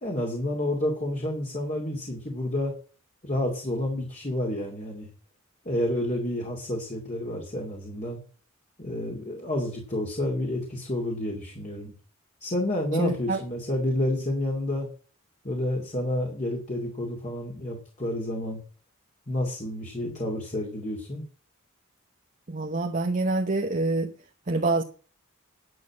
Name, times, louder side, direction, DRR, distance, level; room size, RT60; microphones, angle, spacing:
voice 1, 0.0-2.7 3.2-5.1 5.6-8.2 8.8-11.9 12.4-14.9 15.4-18.6 19.3-21.2, left 1 dB, 35° left, 2.4 m, -29 dB
voice 2, 13.0-13.4 22.5-24.1 24.5-24.8, right 2 dB, 40° right, 1.0 m, -26 dB
11.0 x 6.7 x 7.5 m
head